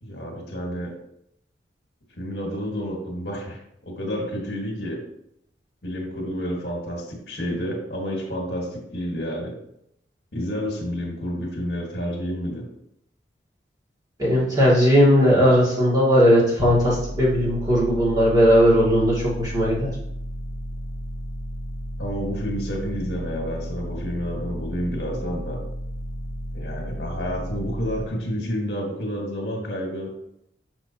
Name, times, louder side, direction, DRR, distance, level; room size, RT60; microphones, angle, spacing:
voice 1, 0.0-0.9 2.2-3.6 3.8-5.0 5.8-9.6 10.3-12.7 22.0-25.6 26.5-30.1, equal, 65° left, 0 dB, 1.7 m, -30 dB
voice 2, 14.2-19.9, equal, 20° right, -7 dB, 2.3 m, -18 dB
sound 1, 16.6-28.1, equal, 35° left, 0.6 m, -33 dB
6.0 x 6.0 x 2.9 m, 0.75 s
head